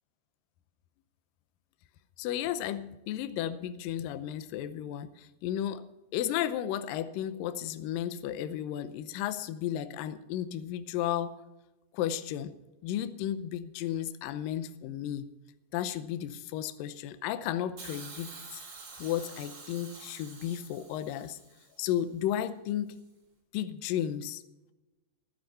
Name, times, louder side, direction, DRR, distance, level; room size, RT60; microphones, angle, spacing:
voice 1, 2.2-5.9 6.1-11.4 11.9-12.5 12.8-15.3 15.7-18.6 19.0-21.4 21.8-23.0 23.5-24.4, left 11 dB, 80° left, 11 dB, 2.0 m, -33 dB
Hiss, 17.8-21.9 22.9-23.0, right 4 dB, 35° right, 2.6 m, -48 dB
15.5 x 10.5 x 5.6 m, 1.0 s
omnidirectional pair, 4.9 m